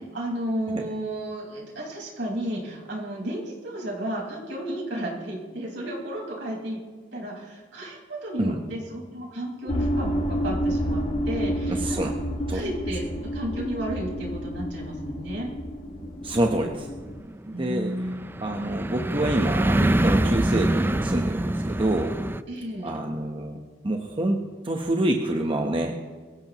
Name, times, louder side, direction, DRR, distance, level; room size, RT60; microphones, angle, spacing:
voice 1, 0.1-6.8 7.1-12.1 12.5-15.5 17.5-18.3 22.5-23.0, right 1 dB, 70° right, -3 dB, 5.2 m, -33 dB
sound 1, 9.7-17.2, equal, 40° left, 1.5 m, -29 dB
voice 2, 11.7-12.1 12.5-12.7 16.2-16.9 17.5-18.0 18.4-22.2 22.8-23.6 23.8-26.0, right 1 dB, 30° right, 2 dB, 1.0 m, -27 dB
sound 2, 16.0-22.4, right 1 dB, 10° right, 0.4 m, -25 dB
23.0 x 15.5 x 3.0 m, 1.5 s
head